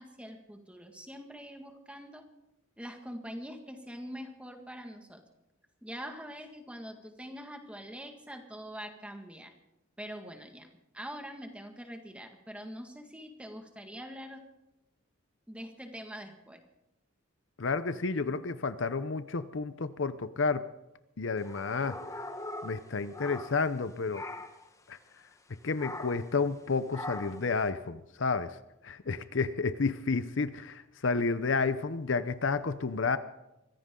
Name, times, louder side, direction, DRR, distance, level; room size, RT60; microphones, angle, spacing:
voice 1, 0.0-2.2 2.8-5.2 5.8-9.5 10.0-14.4 15.5-16.6, equal, 5° right, 4 dB, 1.8 m, -44 dB
voice 2, 17.6-20.7 21.2-22.0 22.6-24.3 24.9-25.0 25.6-28.6 28.8-33.2, left 4 dB, 60° left, 13 dB, 0.7 m, -31 dB
sound 1, 21.4-23.8 24.1-24.7 25.8-26.3 26.9-27.5, left 2 dB, 15° left, 1.1 m, -41 dB
24.0 x 15.5 x 3.8 m, 0.91 s
head